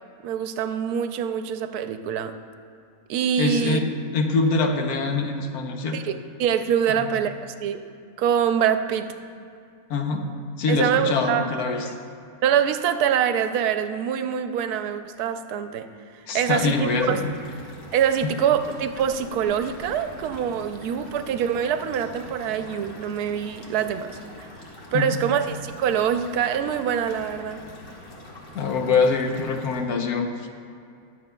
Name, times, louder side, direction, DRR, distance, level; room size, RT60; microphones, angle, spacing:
voice 1, 0.2-2.4 3.1-3.8 5.9-7.8 8.2-9.1 10.7-11.5 11.8-11.9 12.4-15.9 16.3-17.2 17.9-24.2 24.9-27.6, right 8 dB, 85° right, 9 dB, 1.1 m, -24 dB
voice 2, 3.4-6.0 6.9-7.1 9.9-10.3 10.6-11.9 16.3-17.3 18.2-18.3 24.9-25.2 28.5-30.5, left 4 dB, 80° left, 4 dB, 1.3 m, -24 dB
sound 1, 16.3-29.8, left 1 dB, 55° left, 1.7 m, -44 dB
20.5 x 7.2 x 2.2 m, 2.4 s
omnidirectional pair, 1.6 m